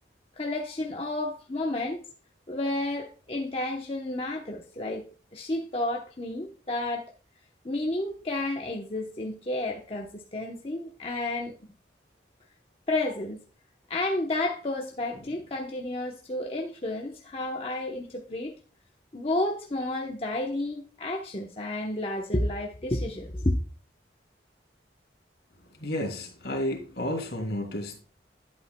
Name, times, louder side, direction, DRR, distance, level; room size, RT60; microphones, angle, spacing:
voice 1, 0.4-2.0 2.5-5.0 5.3-7.1 7.6-11.5 12.9-13.4 13.9-18.5 19.1-23.5, left 2 dB, 30° left, 0.9 m, -31 dB
voice 2, 25.8-28.0, left 1 dB, 65° left, 2.8 m, -31 dB
11.5 x 8.6 x 2.2 m
head